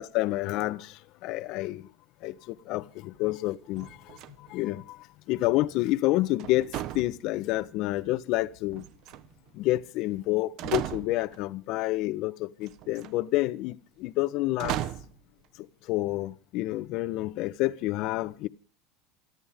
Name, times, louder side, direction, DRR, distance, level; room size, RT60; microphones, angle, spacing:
voice 1, 0.0-1.9 2.2-5.0 5.3-8.8 9.5-14.8 15.9-18.5, left 17 dB, 60° left, 1.2 m, -29 dB
sound 1, 3.8-4.6 6.4-7.7 8.7-9.5 10.2-10.3 10.6-11.4 12.7-13.1 14.6-15.2, right 12 dB, 55° right, 1.2 m, -36 dB
28.0 x 11.0 x 3.7 m
hypercardioid pair, 95°, 0 cm